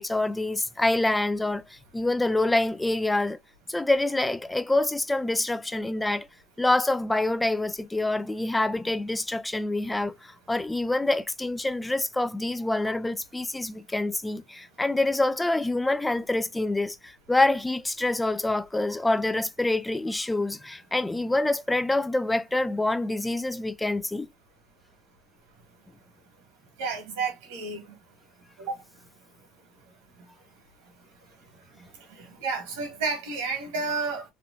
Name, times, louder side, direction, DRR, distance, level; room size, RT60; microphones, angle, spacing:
voice 1, 0.0-3.4 3.7-6.3 6.6-24.3, left 2 dB, 10° left, 0.3 m, -26 dB
voice 2, 26.8-27.8 28.6-28.8 32.4-34.2, right 4 dB, 90° right, 1.6 m, -30 dB
3.3 x 2.3 x 3.7 m
supercardioid pair, 105°, 0 cm